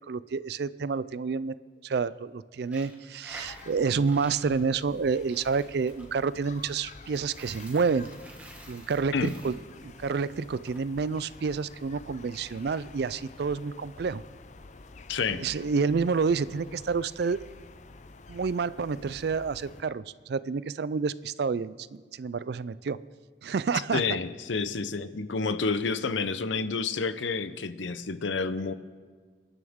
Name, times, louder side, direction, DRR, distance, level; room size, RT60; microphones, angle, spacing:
voice 1, 0.1-1.5 1.8-8.1 8.7-9.5 9.8-14.2 15.4-17.4 18.3-23.0 23.4-24.0, right 5 dB, 55° right, 17 dB, 0.4 m, -29 dB
Coin (dropping), 2.6-10.8, right 1 dB, 10° right, 1.5 m, -50 dB
sound 1, 3.3-19.8, left 3 dB, 40° left, 0.5 m, -49 dB
voice 2, 15.1-15.4 23.9-28.7, left 4 dB, 75° left, 12 dB, 0.7 m, -29 dB
29.0 x 11.0 x 3.7 m, 1.5 s
head